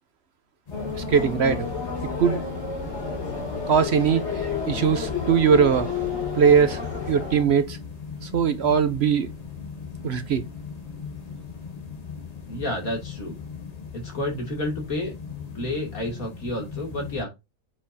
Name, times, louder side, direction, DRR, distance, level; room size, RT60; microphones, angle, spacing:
sound 1, 0.7-7.4, left 5 dB, 50° left, 3.0 m, -31 dB
sound 2, 0.7-17.2, left 6 dB, 30° left, 0.9 m, -38 dB
voice 1, 1.1-1.7 2.2-2.4 3.7-5.9 6.3-6.8 7.1-7.8 8.2-9.3 10.0-10.4, right 7 dB, 55° right, 0.8 m, -20 dB
voice 2, 12.5-13.3 13.9-15.1 15.5-17.3, left 1 dB, 70° left, 3.2 m, -30 dB
8.8 x 4.8 x 2.7 m
omnidirectional pair, 1.6 m